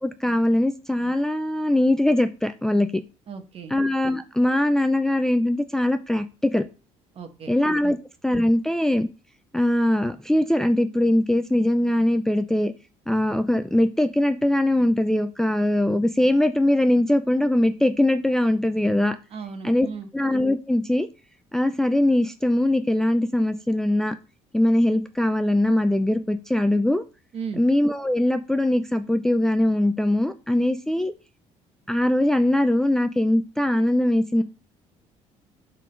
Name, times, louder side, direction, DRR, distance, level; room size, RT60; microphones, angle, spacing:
voice 1, 0.0-3.0 3.7-6.7 7.5-8.0 8.2-9.1 9.5-12.7 13.1-19.2 19.6-19.9 20.1-21.1 21.5-24.2 24.5-27.0 27.6-31.1 31.9-34.4, left 1 dB, 5° left, 9 dB, 0.4 m, -21 dB
voice 2, 3.3-3.7 7.1-7.5 7.8-7.9 19.3-20.1 27.3-27.6 34.4-34.5, right 6 dB, 50° right, 7 dB, 1.3 m, -36 dB
7.5 x 3.9 x 5.0 m, 0.31 s
cardioid pair, 125°, 13 cm